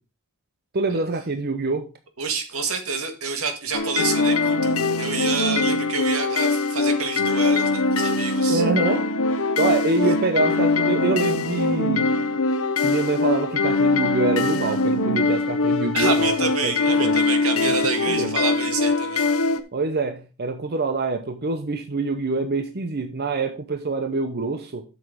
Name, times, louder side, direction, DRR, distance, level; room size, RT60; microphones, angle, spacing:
voice 1, 0.7-1.9 8.5-9.0 9.6-12.1 12.8-16.3 16.6-17.2 17.6-18.4 19.7-24.8, right 3 dB, 50° right, 0.8 m, -25 dB
voice 2, 2.2-8.6 10.0-10.1 15.9-19.3, right 4 dB, 85° right, 1.8 m, -28 dB
sound 1, 3.7-19.6, left 3 dB, 80° left, 0.9 m, -22 dB
7.9 x 6.5 x 5.1 m
head